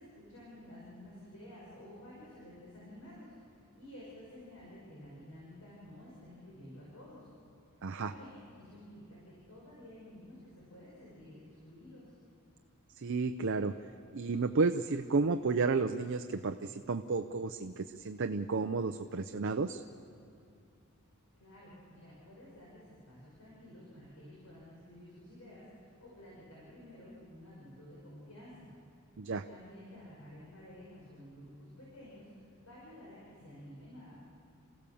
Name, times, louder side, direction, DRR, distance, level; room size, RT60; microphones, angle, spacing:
voice 1, 0.0-3.3 3.7-7.3 8.0-12.1 21.4-28.7 29.5-34.2, left 1 dB, 75° left, -6 dB, 5.7 m, -52 dB
voice 2, 7.8-8.1 13.0-13.8 14.1-19.8 29.2-29.5, right 4 dB, 60° right, 8 dB, 0.6 m, -32 dB
28.5 x 15.5 x 7.1 m, 2.6 s
head